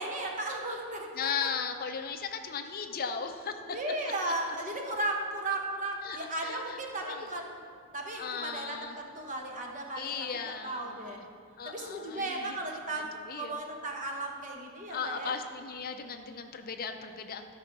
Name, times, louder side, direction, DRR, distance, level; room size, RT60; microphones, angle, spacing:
voice 1, 0.0-1.5 3.7-7.6 7.9-10.1 10.4-11.2 11.6-15.3, right 2 dB, 35° right, 1 dB, 1.1 m, -35 dB
voice 2, 1.1-3.6 6.0-6.8 7.0-7.3 8.1-9.0 10.0-11.2 11.6-12.6 12.9-13.6 14.9-17.5, left 6 dB, 45° left, 6 dB, 0.5 m, -37 dB
13.5 x 5.0 x 6.0 m, 2.2 s
head